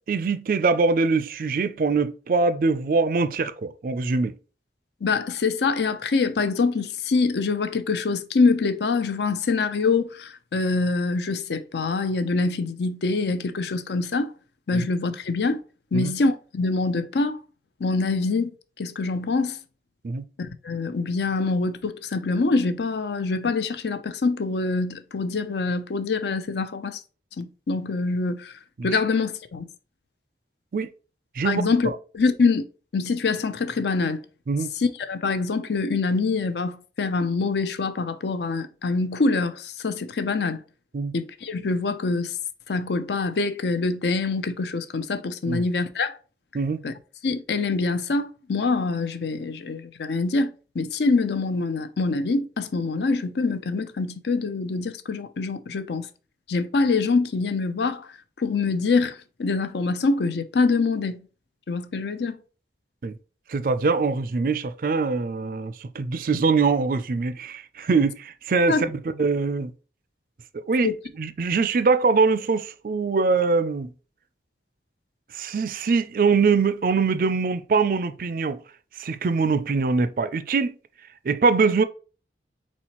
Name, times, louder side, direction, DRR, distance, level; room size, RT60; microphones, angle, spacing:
voice 1, 0.1-4.3 14.7-14.9 15.9-16.1 20.0-20.2 30.7-30.9 31.4-31.7 34.5-34.7 40.9-41.1 45.5-45.6 46.5-46.8 63.0-63.2 63.5-69.7 70.5-70.9 71.2-73.9 75.3-78.6 79.0-80.7 81.2-81.8, right 4 dB, 50° right, 0.4 m, -23 dB
voice 2, 5.0-14.3 14.7-15.6 15.9-17.4 17.8-19.6 20.4-27.0 27.4-28.5 28.8-29.7 31.4-32.6 32.9-34.2 34.8-40.6 41.1-42.4 42.7-46.2 46.8-46.9 47.2-50.5 50.7-56.1 56.5-58.1 58.4-61.3 61.7-62.4 68.7-68.8 70.8-70.9, left 3 dB, 75° left, 0.5 m, -25 dB
4.2 x 4.2 x 2.9 m
head